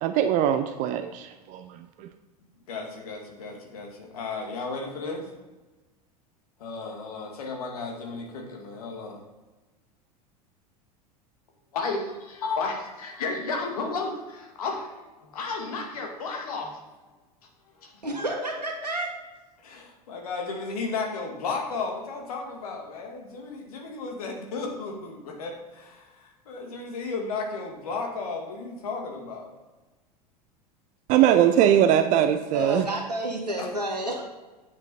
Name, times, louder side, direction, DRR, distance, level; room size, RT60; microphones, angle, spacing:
voice 1, 0.0-2.1 31.1-32.8, right 10 dB, 40° right, 9 dB, 0.6 m, -21 dB
voice 2, 2.7-5.2 6.6-9.2 11.7-16.8 17.8-17.9 19.6-29.5, left 4 dB, 65° left, 1 dB, 2.2 m, -33 dB
voice 3, 18.0-19.1 32.5-34.2, right 1 dB, 85° right, 1 dB, 2.0 m, -30 dB
8.9 x 7.7 x 4.2 m, 1.2 s
figure-of-eight pair, 80°, 21 cm